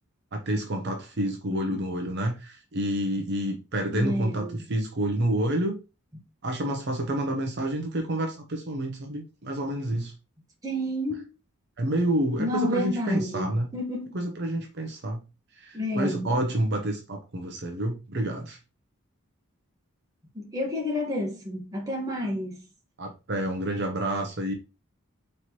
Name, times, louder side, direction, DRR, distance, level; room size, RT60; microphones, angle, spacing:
voice 1, 0.3-5.8 6.4-10.1 11.8-13.7 14.1-15.2 15.6-18.6 23.0-24.5, right 1 dB, 50° right, 0.7 m, -29 dB
voice 2, 1.5-1.8 3.9-4.6 10.6-11.3 12.4-14.1 15.7-16.3 20.3-22.6, left 1 dB, 15° right, 1.2 m, -30 dB
4.3 x 3.2 x 2.9 m
head